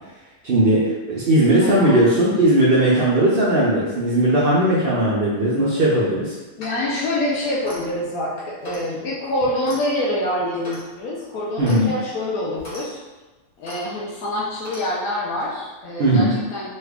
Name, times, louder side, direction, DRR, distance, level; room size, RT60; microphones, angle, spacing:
voice 1, 0.4-6.3 11.6-11.9 16.0-16.3, right 1 dB, 80° right, -6 dB, 0.5 m, -18 dB
voice 2, 1.6-2.0 6.6-13.0 13.6-16.7, left 1 dB, 75° left, -6 dB, 1.0 m, -26 dB
Clock, 7.5-7.9 8.6-8.9 9.6-9.8 10.6-10.9 11.6-11.8 12.6-12.9 13.6-13.8 14.6-14.9, right 1 dB, 30° left, 1.1 m, -36 dB
3.2 x 2.3 x 3.3 m, 1.2 s
omnidirectional pair, 1.6 m